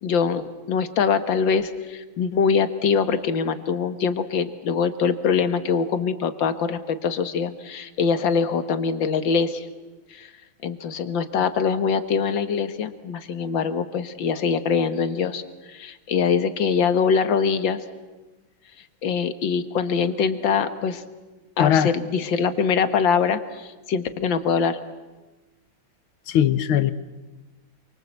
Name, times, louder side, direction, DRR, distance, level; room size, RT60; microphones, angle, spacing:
voice 1, 0.0-9.7 10.1-10.3 10.6-17.8 19.0-21.0 21.6-24.8, left 6 dB, 70° left, 11 dB, 2.1 m, -23 dB
voice 2, 21.6-21.9 26.3-26.9, left 10 dB, 85° left, 14 dB, 1.9 m, -19 dB
28.0 x 24.0 x 8.1 m, 1.2 s
omnidirectional pair, 2.2 m